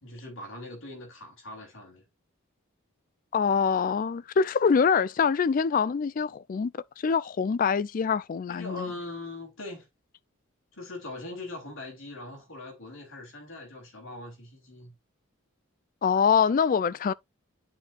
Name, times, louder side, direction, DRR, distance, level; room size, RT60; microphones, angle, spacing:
voice 1, 0.0-2.0 8.5-9.9 10.7-14.9, left 2 dB, 70° left, 3.0 m, -41 dB
voice 2, 3.3-6.7 7.0-8.9 16.0-17.1, left 6 dB, 40° left, 0.3 m, -24 dB
10.5 x 4.4 x 2.5 m
head